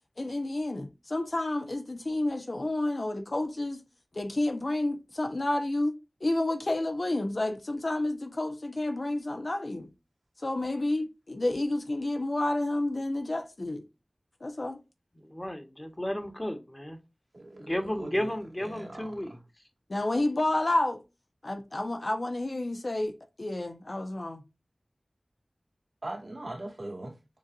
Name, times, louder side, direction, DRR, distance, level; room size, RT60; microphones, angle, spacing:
voice 1, 0.2-3.8 4.1-9.9 10.4-13.8 14.4-14.8 19.9-21.0 21.4-24.4, left 2 dB, 60° left, 1.0 m, -30 dB
voice 2, 15.2-17.0 17.6-19.4, left 1 dB, 25° left, 1.4 m, -33 dB
voice 3, 17.3-18.3 18.6-19.1 26.0-27.1, right 1 dB, 65° right, 2.3 m, -39 dB
7.1 x 2.6 x 2.6 m
wide cardioid pair, 40°, 0 cm